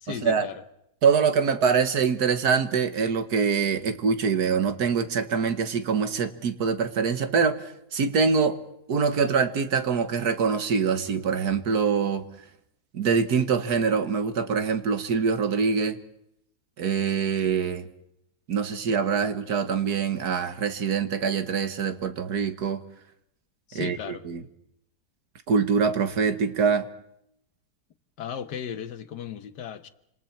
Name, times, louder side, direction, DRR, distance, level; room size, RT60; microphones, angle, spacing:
voice 1, 0.0-0.6 18.8-18.9 23.7-24.2 28.2-29.9, left 8 dB, 80° left, 1.7 m, -36 dB
voice 2, 1.0-8.6 8.9-12.2 12.9-16.0 16.8-17.9 18.5-22.8 23.7-24.0 24.3-24.4 25.5-26.9, right 6 dB, 70° right, 1.8 m, -24 dB
28.0 x 26.5 x 4.6 m
omnidirectional pair, 1.8 m